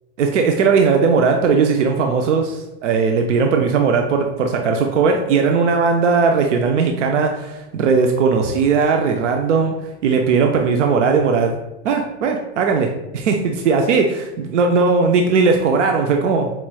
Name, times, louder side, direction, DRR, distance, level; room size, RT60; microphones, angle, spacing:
voice 1, 0.2-9.8 10.0-11.5 11.8-16.5, right 5 dB, 90° right, 3 dB, 0.5 m, -18 dB
4.4 x 3.0 x 2.2 m, 0.99 s
hypercardioid pair, 125°, 35 cm